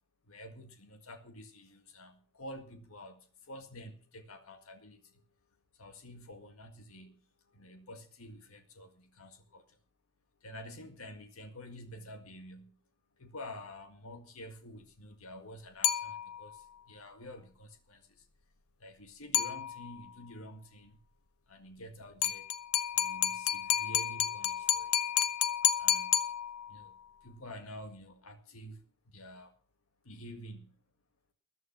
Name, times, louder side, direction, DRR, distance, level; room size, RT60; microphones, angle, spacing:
voice 1, 0.3-3.2 3.5-5.1 5.8-7.2 7.5-9.6 10.4-12.7 13.2-16.6 16.9-18.1 18.8-21.0 21.5-22.5 22.9-25.3 25.8-26.1 26.7-26.9 27.2-29.5 30.1-30.7, left 1 dB, 70° left, 7 dB, 1.9 m, -49 dB
sound 1, 15.8-16.6 19.3-20.1 22.2-26.9, left 11 dB, 90° left, 0.9 m, -31 dB
14.0 x 11.0 x 6.0 m, 0.41 s
head